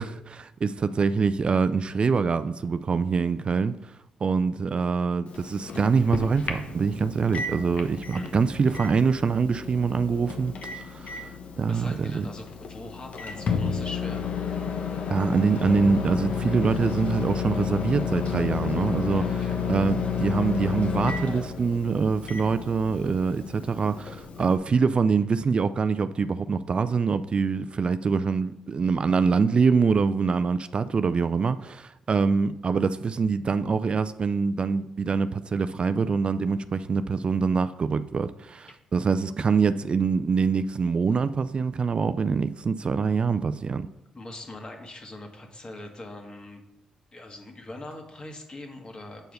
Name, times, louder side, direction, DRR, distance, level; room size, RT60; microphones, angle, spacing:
voice 1, 0.0-3.8 4.2-11.3 11.6-12.3 15.1-43.9, right 5 dB, 45° right, 0.4 m, -25 dB
Microwave oven, 5.3-24.6, left 6 dB, 60° left, 1.1 m, -31 dB
voice 2, 11.7-14.3 19.1-19.6 38.7-38.8 44.1-46.6 47.1-49.3, left 2 dB, 35° left, 1.8 m, -42 dB
8.0 x 4.6 x 5.2 m
supercardioid pair, 50°, 2 cm